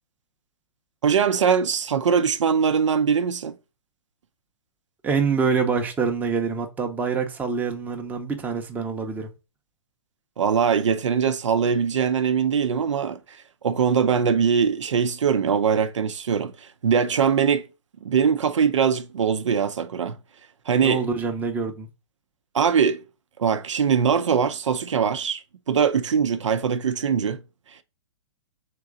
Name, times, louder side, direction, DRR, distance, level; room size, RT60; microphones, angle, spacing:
voice 1, 1.0-3.6 10.4-13.2 13.6-16.5 16.8-17.6 18.0-20.1 20.7-21.0 22.5-23.0 23.4-25.4 25.7-27.4, right 7 dB, 80° right, 0.6 m, -22 dB
voice 2, 5.0-9.3 20.8-21.9, right 5 dB, 10° right, 0.6 m, -25 dB
3.8 x 2.9 x 3.6 m
hypercardioid pair, 135°, 15 cm